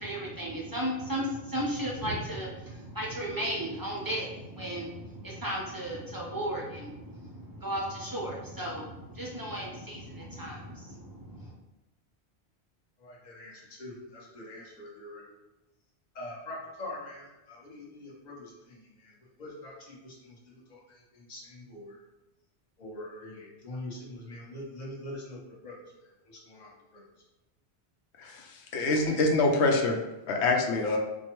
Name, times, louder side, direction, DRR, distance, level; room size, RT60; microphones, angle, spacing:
voice 1, 0.0-11.5, equal, 30° right, -3 dB, 0.4 m, -35 dB
voice 2, 13.0-15.3 16.1-19.1 19.4-22.0 22.8-25.7 26.0-27.0, left 1 dB, 45° left, -4 dB, 1.0 m, -44 dB
voice 3, 28.2-30.0 30.3-31.0, left 2 dB, 85° left, 2 dB, 0.9 m, -25 dB
4.6 x 2.2 x 3.0 m, 1.0 s
omnidirectional pair, 1.1 m